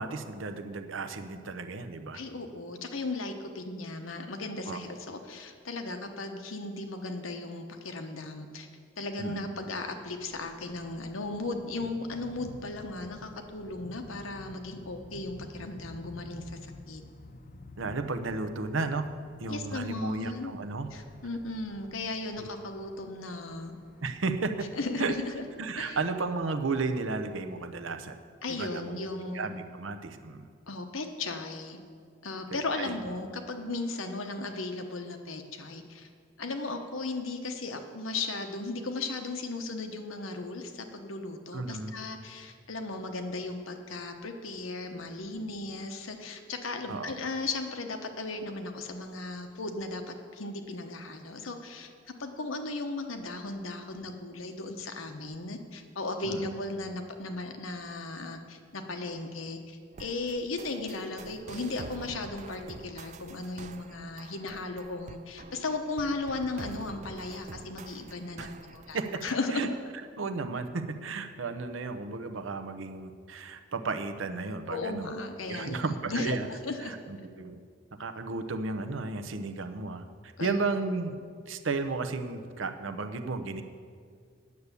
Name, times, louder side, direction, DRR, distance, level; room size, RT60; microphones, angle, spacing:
voice 1, 0.0-2.2 4.7-4.8 9.2-9.5 17.8-19.1 19.4-20.9 22.4-22.5 24.0-24.7 25.0-25.1 25.6-28.1 28.5-28.8 29.3-30.5 32.5-32.9 41.5-41.9 46.9-47.1 56.2-56.5 68.4-68.5 68.9-69.0 69.5-69.7 70.2-75.1 75.5-76.5 76.8-77.6 78.0-81.2 81.5-83.6, right 3 dB, 75° right, 8 dB, 0.8 m, -33 dB
voice 2, 2.1-8.7 9.0-16.6 16.9-17.0 19.5-20.5 20.9-23.7 24.7-25.4 25.8-26.0 28.4-29.5 30.7-31.8 32.2-36.1 36.4-51.9 52.2-69.7 74.7-76.9 80.4-80.6, left 2 dB, 90° left, 6 dB, 1.1 m, -36 dB
sound 1, 10.1-27.9, left 2 dB, 45° left, 0.6 m, -51 dB
sound 2, 59.9-69.3, right 4 dB, 35° right, 0.4 m, -47 dB
9.5 x 6.9 x 8.3 m, 2.1 s
head